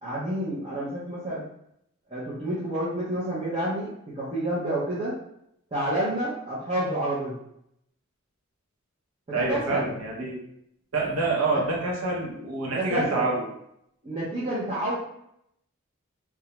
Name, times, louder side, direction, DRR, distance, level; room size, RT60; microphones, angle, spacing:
voice 1, 0.0-1.5 2.1-5.2 5.7-7.4 9.3-9.9 11.5-11.6 12.7-13.3 14.0-15.0, right 1 dB, 25° right, -9 dB, 0.6 m, -29 dB
voice 2, 9.3-10.4 10.9-13.5, right 2 dB, 70° right, -2 dB, 0.7 m, -27 dB
2.3 x 2.0 x 2.8 m, 0.75 s
head